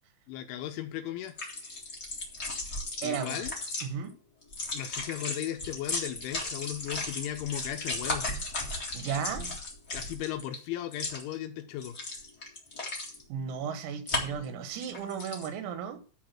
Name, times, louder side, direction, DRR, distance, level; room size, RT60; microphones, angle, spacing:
voice 1, 0.3-1.4 3.0-3.5 4.7-8.3 9.9-12.0, left 12 dB, 80° left, 3.0 m, -36 dB
sound 1, 1.3-3.8 4.4-10.5 10.9-11.3 11.8-13.2 14.1-14.4 14.8-15.5, left 2 dB, 50° left, 1.1 m, -35 dB
voice 2, 3.0-3.5 3.8-4.1 8.9-9.6 13.3-16.0, right 7 dB, 90° right, 4.0 m, -35 dB
13.0 x 4.8 x 6.0 m
omnidirectional pair, 5.9 m